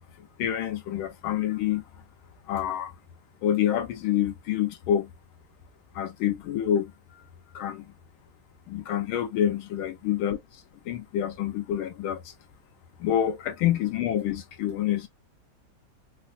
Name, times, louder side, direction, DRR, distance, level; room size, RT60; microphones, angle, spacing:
voice 1, 0.2-1.8 2.5-2.9 3.4-5.1 5.9-6.9 7.5-7.9 8.7-10.4 10.8-12.3 13.0-15.1, left 10 dB, 80° left, 1.4 m, -27 dB
4.1 x 2.1 x 2.3 m
omnidirectional pair, 2.3 m